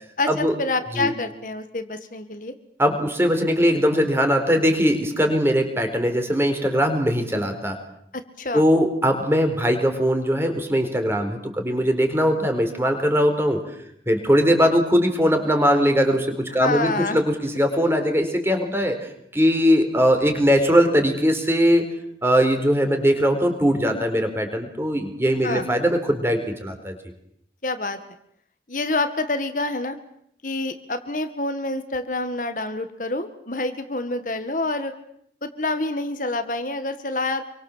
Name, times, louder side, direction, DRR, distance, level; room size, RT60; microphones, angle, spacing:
voice 1, 0.2-2.5 8.1-8.6 16.5-17.2 25.4-25.7 27.6-28.0 28.7-30.0 30.4-34.9 35.4-37.4, left 2 dB, 50° left, 8 dB, 1.9 m, -27 dB
voice 2, 2.8-7.8 8.5-13.6 14.1-21.8 22.2-27.0, equal, 15° right, 5 dB, 4.5 m, -20 dB
27.5 x 24.5 x 7.6 m, 0.70 s
head